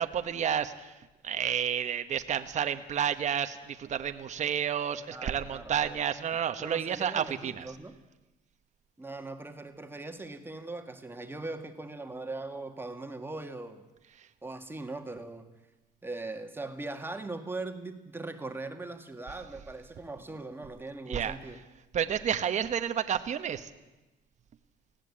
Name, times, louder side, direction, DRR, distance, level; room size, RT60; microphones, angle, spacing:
voice 1, 0.0-7.7 14.2-14.3 21.1-21.3 21.9-23.7, right 8 dB, 45° right, 9 dB, 1.1 m, -30 dB
voice 2, 5.1-6.0 6.6-7.9 9.0-13.8 14.4-15.5 16.0-21.6, right 2 dB, 15° right, 6 dB, 1.9 m, -40 dB
19.5 x 16.0 x 8.6 m, 1.0 s
cardioid pair, 110°, 17 cm